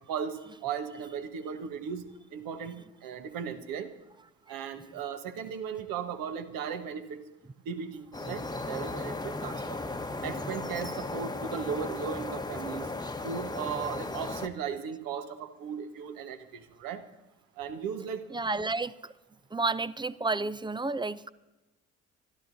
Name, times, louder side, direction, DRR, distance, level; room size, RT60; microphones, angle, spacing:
voice 1, 0.1-3.9 4.5-7.2 7.6-9.8 10.2-12.9 13.2-17.0 17.6-18.2, right 7 dB, 60° right, 1.4 m, -37 dB
sound 1, 8.1-14.5, left 2 dB, 10° left, 1.1 m, -36 dB
voice 2, 18.3-18.9 19.5-21.3, right 3 dB, 10° right, 0.5 m, -31 dB
26.0 x 13.5 x 2.7 m
figure-of-eight pair, 50°, 38 cm